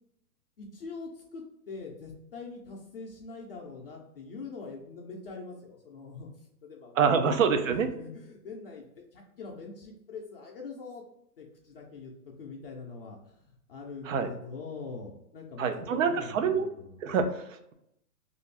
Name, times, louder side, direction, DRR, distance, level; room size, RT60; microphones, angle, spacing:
voice 1, 0.6-11.0 11.4-17.0, left 4 dB, 40° left, -2 dB, 0.4 m, -43 dB
voice 2, 7.0-7.9 14.1-14.3 15.6-16.7 17.0-17.7, right 6 dB, 55° right, 7 dB, 0.5 m, -26 dB
2.5 x 2.4 x 3.2 m, 0.80 s
hypercardioid pair, 140°, 46 cm